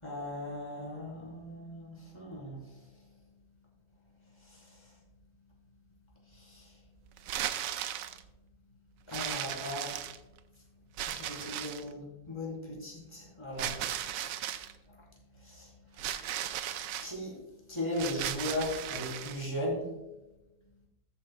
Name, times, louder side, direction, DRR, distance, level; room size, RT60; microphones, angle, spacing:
voice 1, 0.0-3.1 4.2-4.9 6.3-6.8 9.1-10.0 11.0-14.1 14.8-15.1 15.3-16.1 17.0-19.9, left 1 dB, 15° left, -3 dB, 3.6 m, -38 dB
sound 1, 7.2-8.2 9.1-10.4 11.0-11.9 13.6-14.7 16.0-17.1 17.9-19.5, right 11 dB, 85° right, 1.3 m, -36 dB
14.0 x 9.3 x 2.3 m, 0.98 s
omnidirectional pair, 1.9 m